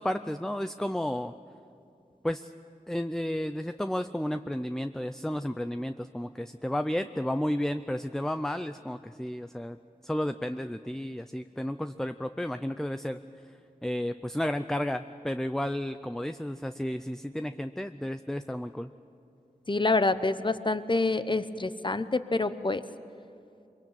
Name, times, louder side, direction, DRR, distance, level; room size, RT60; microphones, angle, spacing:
voice 1, 0.0-1.3 2.2-2.5 2.9-9.8 10.0-13.2 13.8-18.9, left 1 dB, 5° left, 9 dB, 0.5 m, -32 dB
voice 2, 19.7-22.8, left 3 dB, 30° left, 12 dB, 0.9 m, -27 dB
23.5 x 22.5 x 8.8 m, 2.6 s
wide cardioid pair, 55°, 15 cm